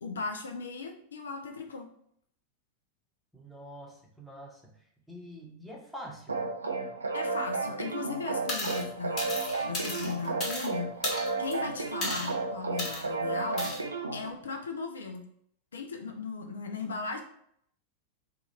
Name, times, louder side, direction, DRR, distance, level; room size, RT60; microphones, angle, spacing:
voice 1, 0.0-1.9 7.1-9.4 9.7-10.9 11.4-13.7 14.1-15.2 15.7-17.2, left 4 dB, 70° left, 4 dB, 0.4 m, -37 dB
voice 2, 3.3-4.6 5.1-6.4, equal, ahead, -3 dB, 0.8 m, -45 dB
sound 1, 6.3-14.3, right 3 dB, 75° right, 0.4 m, -33 dB
sound 2, 8.5-8.8 9.2-10.7 11.0-11.5 12.0-12.3 12.8-13.0 13.6-13.8, left 1 dB, 35° left, 1.3 m, -34 dB
2.8 x 2.4 x 4.1 m, 0.67 s
figure-of-eight pair, 90°, 0 cm